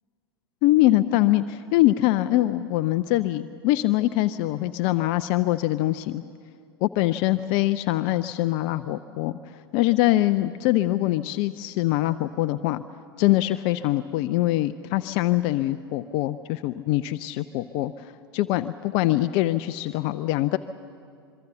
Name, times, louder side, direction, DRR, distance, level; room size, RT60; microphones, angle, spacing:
voice 1, 0.6-6.2 6.8-12.8 13.2-20.6, left 16 dB, 40° left, 12 dB, 0.5 m, -23 dB
25.5 x 23.5 x 7.0 m, 2.3 s
figure-of-eight pair, 95°, 13 cm